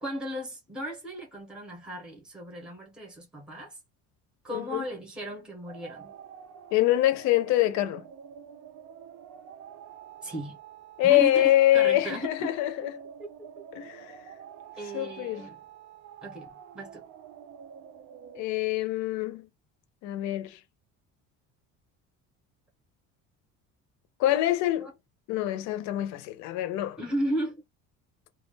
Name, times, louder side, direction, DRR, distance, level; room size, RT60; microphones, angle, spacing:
voice 1, 0.0-3.8 4.4-6.1 10.2-10.6 11.0-12.5 13.2-13.3 13.6-13.7 14.8-15.6 16.2-16.5 16.7-17.1 24.8-24.9 27.0-27.6, right 1 dB, 5° right, 0.7 m, -35 dB
voice 2, 4.5-4.9 6.7-8.1 11.0-13.0 13.7-14.2 14.9-15.5 18.3-19.5 20.0-20.6 24.2-24.9 25.3-27.0, left 14 dB, 65° left, 0.5 m, -25 dB
sound 1, 5.7-18.4, right 8 dB, 55° right, 0.5 m, -48 dB
2.3 x 2.1 x 3.2 m
cardioid pair, 180°, 31 cm